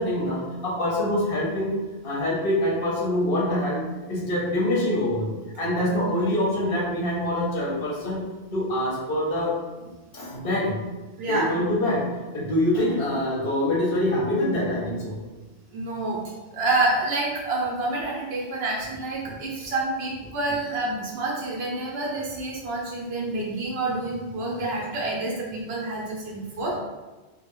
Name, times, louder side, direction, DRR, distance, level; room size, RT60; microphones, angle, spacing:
voice 1, 0.0-1.7 2.0-5.3 5.6-8.3 8.5-9.6 10.1-10.8 11.3-15.2 19.2-19.3, left 1 dB, 60° left, -5 dB, 0.7 m, -25 dB
voice 2, 11.2-11.5 15.7-16.2 16.5-26.8, right 2 dB, 65° right, -3 dB, 0.7 m, -28 dB
2.1 x 2.0 x 2.9 m, 1.2 s
omnidirectional pair, 1.2 m